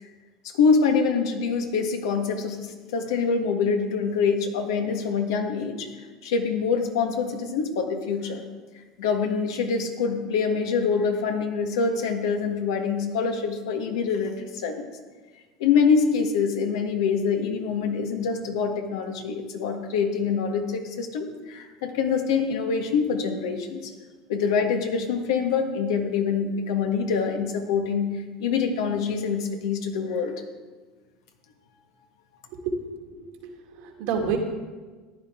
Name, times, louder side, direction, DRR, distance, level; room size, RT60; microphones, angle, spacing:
voice 1, 0.4-5.9 6.2-8.4 9.0-14.9 15.6-23.9 24.3-30.4, left 5 dB, 75° left, 4 dB, 1.6 m, -25 dB
voice 2, 32.5-34.4, right 5 dB, 65° right, 2 dB, 2.1 m, -30 dB
14.5 x 10.5 x 3.7 m, 1.4 s
hypercardioid pair, 85°, 2 cm